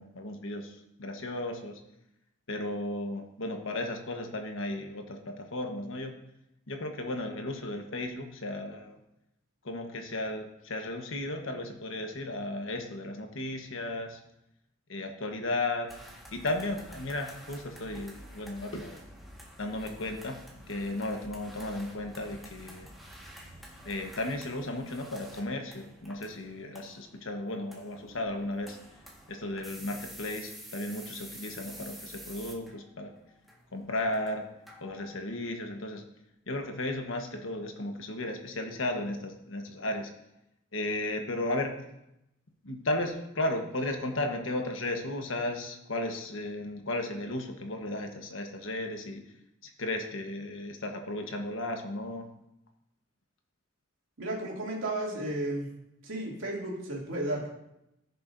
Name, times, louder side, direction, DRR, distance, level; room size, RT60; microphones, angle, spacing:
voice 1, 0.0-1.8 2.5-6.1 6.7-9.0 9.6-14.2 14.9-15.9 16.3-18.9 19.6-20.4 20.7-22.9 23.8-28.8 29.3-33.1 33.7-34.5 34.8-36.0 36.5-40.1 40.7-41.7 42.6-49.2 49.6-52.3, left 1 dB, 75° left, 4 dB, 1.3 m, -34 dB
sound 1, 15.9-35.1, equal, ahead, 1.6 m, -49 dB
voice 2, 54.2-55.7 56.0-57.5, right 1 dB, 80° right, -3 dB, 2.6 m, -33 dB
15.5 x 6.8 x 2.7 m, 0.85 s
head